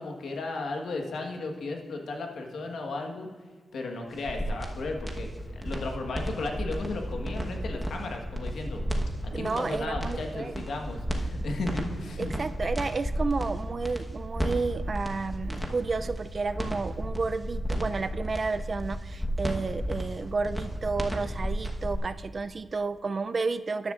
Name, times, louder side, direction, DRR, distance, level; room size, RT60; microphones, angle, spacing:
voice 1, 0.0-3.3 3.7-8.8 9.2-12.3 19.6-19.7, left 3 dB, 75° left, 3 dB, 1.3 m, -35 dB
sound 1, 4.1-22.0, equal, ahead, 1.2 m, -33 dB
voice 2, 9.3-10.6 12.2-23.9, right 4 dB, 40° right, 12 dB, 0.4 m, -31 dB
13.0 x 10.0 x 2.5 m, 1.5 s
cardioid pair, 90°, 0 cm